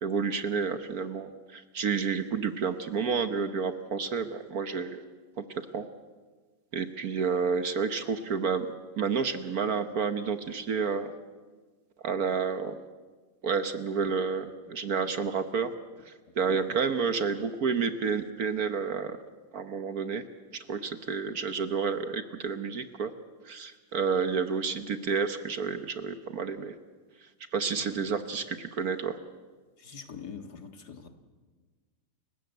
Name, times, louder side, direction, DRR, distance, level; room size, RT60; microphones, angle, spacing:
voice 1, 0.0-5.0 5.4-5.8 6.7-8.7 9.0-11.1 12.0-12.8 13.4-15.7 16.0-19.2 19.5-20.2 20.5-23.1 23.4-26.7 27.2-29.2, right 5 dB, 55° right, 9 dB, 1.3 m, -30 dB
voice 2, 16.5-16.8 27.8-28.2 29.8-31.1, left 6 dB, 55° left, 6 dB, 2.2 m, -45 dB
30.0 x 16.5 x 8.0 m, 1.4 s
omnidirectional pair, 2.1 m